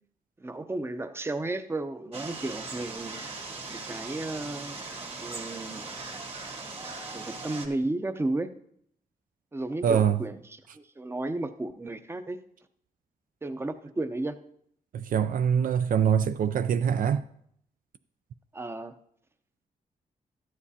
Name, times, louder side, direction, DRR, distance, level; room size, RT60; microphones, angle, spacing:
voice 1, 0.4-3.2 3.7-4.8 5.2-5.8 7.1-8.5 9.5-12.4 13.4-14.3 18.5-18.9, right 2 dB, 15° right, 0.6 m, -33 dB
sound 1, 2.1-7.7, right 3 dB, 40° right, 1.6 m, -39 dB
voice 2, 9.8-10.2 14.9-17.2, right 8 dB, 65° right, 0.4 m, -24 dB
13.0 x 9.7 x 2.8 m
cardioid pair, 105°, 15 cm